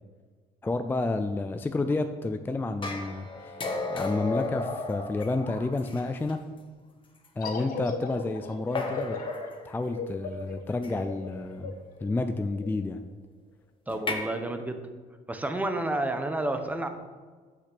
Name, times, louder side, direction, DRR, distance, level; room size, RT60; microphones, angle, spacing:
voice 1, 0.6-3.5 3.9-6.4 7.4-9.2 9.6-11.7 12.0-13.0, left 2 dB, 10° left, 8 dB, 0.4 m, -30 dB
sound 1, 2.8-6.3 7.2-7.3 8.7-9.5 10.8-11.1 13.9-14.1, left 3 dB, 30° left, 1.2 m, -34 dB
sound 2, 7.4-12.7, left 4 dB, 60° left, 1.2 m, -37 dB
voice 2, 13.9-14.8 15.3-16.9, right 2 dB, 10° right, 7 dB, 0.8 m, -30 dB
5.8 x 5.8 x 6.0 m, 1.5 s
cardioid pair, 110°, 17 cm